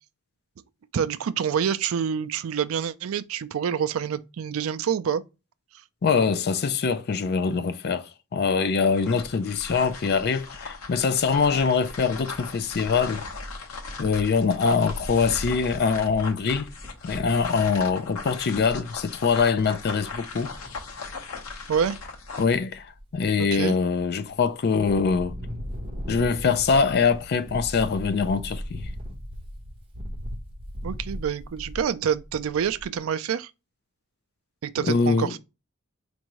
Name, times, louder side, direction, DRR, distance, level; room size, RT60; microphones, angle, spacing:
voice 1, 0.9-5.2 17.7-17.8 21.7-22.0 23.4-23.8 30.8-33.5 34.6-35.4, right 8 dB, 75° right, 0.4 m, -27 dB
voice 2, 6.0-13.2 14.0-16.7 17.0-20.5 22.4-25.3 26.1-28.9 34.8-35.4, left 5 dB, 50° left, 0.4 m, -23 dB
sound 1, 8.9-22.5, left 4 dB, 90° left, 0.9 m, -38 dB
Wind, 14.8-17.8 18.3-18.4 18.6-19.0 20.4-21.0 21.5-22.0 22.4-23.5 24.0-24.5 24.8-33.0, equal, 25° right, 1.0 m, -38 dB
4.5 x 2.6 x 2.9 m
head